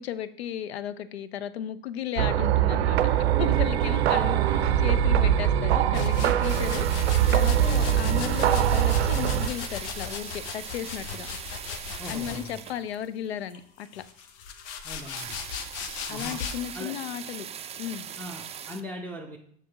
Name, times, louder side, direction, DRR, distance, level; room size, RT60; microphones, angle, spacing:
voice 1, 0.0-3.0 3.4-11.3 12.1-14.0 16.1-17.5 17.8-18.1, left 10 dB, 85° left, 14 dB, 0.5 m, -35 dB
sound 1, 2.2-9.5, right 10 dB, 80° right, 0.5 m, -22 dB
sound 2, 5.9-12.7 13.5-16.8, left 6 dB, 50° left, 0.8 m, -38 dB
sound 3, 6.5-13.3 13.8-13.9 14.2-14.3 14.5-14.6 14.8-18.8, right 8 dB, 20° right, 0.4 m, -41 dB
voice 2, 12.0-12.6 14.8-15.3 16.1-16.4 16.7-16.9 18.2-19.4, left 1 dB, 5° left, -3 dB, 0.8 m, -40 dB
6.7 x 6.2 x 2.9 m, 0.65 s
hypercardioid pair, 85°, 31 cm